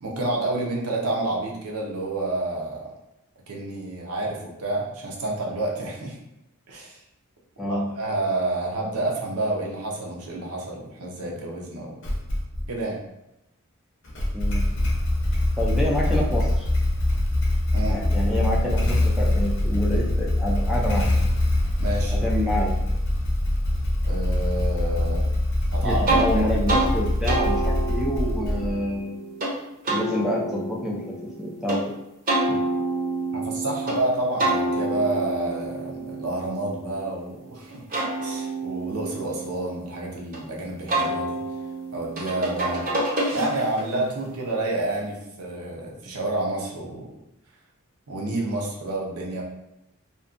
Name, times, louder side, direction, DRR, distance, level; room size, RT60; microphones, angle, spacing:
voice 1, 0.0-2.9 3.5-6.2 6.7-7.0 7.7-11.9 12.7-13.0 17.7-18.0 21.8-22.2 24.1-25.3 25.7-26.5 33.3-37.8 38.2-41.4 41.9-42.9 43.3-47.1 48.1-49.4, right 2 dB, 80° right, -2 dB, 0.6 m, -29 dB
voice 2, 7.6-7.9 14.3-14.7 15.6-16.7 17.9-21.1 22.1-22.8 25.8-29.2 29.9-31.0 31.4-31.8 32.5-32.6, equal, ahead, -4 dB, 0.3 m, -27 dB
Motorcycle / Engine starting, 12.0-12.7 14.0-28.9, left 1 dB, 55° left, 0.6 m, -23 dB
sound 1, 26.1-26.3 26.7-26.9 27.3-29.5 29.8-31.8 32.3-34.0 34.4-37.3 37.7-40.4 40.9-43.9, right 2 dB, 40° right, 0.6 m, -28 dB
2.5 x 2.2 x 2.4 m, 0.87 s
head